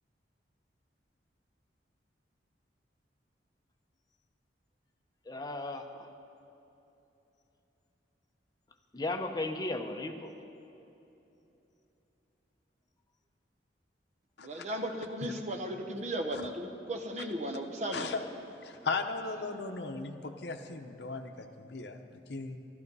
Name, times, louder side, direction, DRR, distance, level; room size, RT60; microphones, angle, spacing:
voice 1, 5.3-6.1 8.9-10.3, left 2 dB, 20° left, 5 dB, 0.7 m, -35 dB
voice 2, 14.4-18.1, right 1 dB, 40° right, 4 dB, 1.0 m, -36 dB
voice 3, 18.6-22.6, left 4 dB, 65° left, 5 dB, 0.8 m, -37 dB
12.5 x 12.0 x 5.4 m, 2.9 s
head